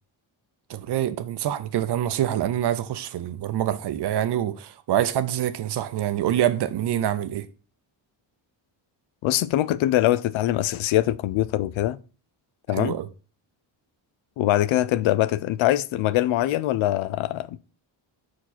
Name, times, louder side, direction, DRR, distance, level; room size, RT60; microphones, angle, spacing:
voice 1, 0.7-7.5 12.7-13.1, right 11 dB, 60° right, 0.7 m, -26 dB
voice 2, 9.2-12.0 12.7-13.0 14.4-17.6, left 14 dB, 80° left, 0.5 m, -23 dB
6.0 x 4.7 x 4.1 m
cardioid pair, 145°, 47 cm